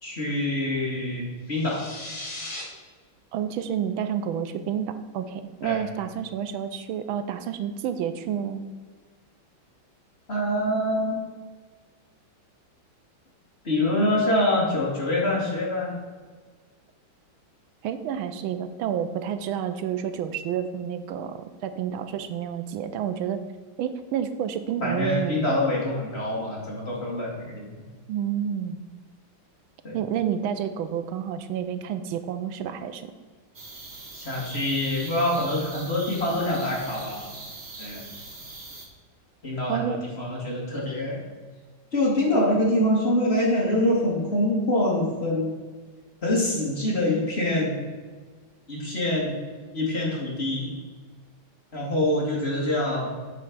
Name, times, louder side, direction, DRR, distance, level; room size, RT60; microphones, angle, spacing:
voice 1, 0.0-1.8 5.6-5.8 10.3-11.2 13.6-15.9 24.8-27.7 29.8-30.0 34.1-37.3 37.8-38.0 39.4-41.2 41.9-45.5 46.2-47.9 48.7-49.4 49.7-50.7 51.7-53.2, left 1 dB, 30° left, -4 dB, 2.2 m, -25 dB
sound 1, 1.5-2.6, left 2 dB, 80° left, 3.0 m, -37 dB
voice 2, 3.3-8.7 17.8-23.4 23.8-25.4 28.1-28.8 29.9-33.1 39.7-40.0, right 9 dB, 85° right, 10 dB, 1.5 m, -29 dB
sound 2, 33.5-38.9, right 2 dB, 40° right, 1.5 m, -41 dB
8.4 x 4.5 x 5.9 m, 1.5 s
omnidirectional pair, 2.2 m